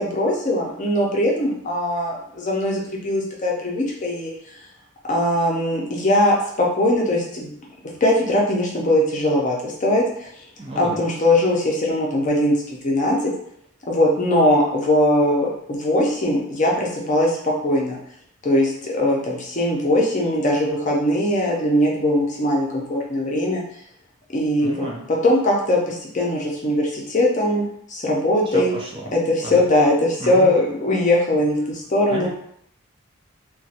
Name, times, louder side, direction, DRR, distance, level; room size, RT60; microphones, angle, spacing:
voice 1, 0.0-2.1 2.4-4.3 5.1-6.3 6.8-7.2 8.0-9.6 9.8-10.0 10.8-12.5 12.8-13.2 13.9-15.5 15.8-17.3 17.6-17.9 18.5-18.7 19.0-23.6 24.3-24.7 25.2-25.8 26.1-26.8 27.1-27.6 28.0-28.7 29.1-29.2 29.5-29.9 30.3-31.6 31.9-32.3, left 1 dB, 35° left, -2 dB, 0.6 m, -20 dB
voice 2, 10.6-11.0 24.6-25.0 28.5-29.1 29.4-29.6 30.2-30.6 32.1-32.3, right 1 dB, 25° right, -2 dB, 0.4 m, -32 dB
3.0 x 2.2 x 2.8 m, 0.69 s
head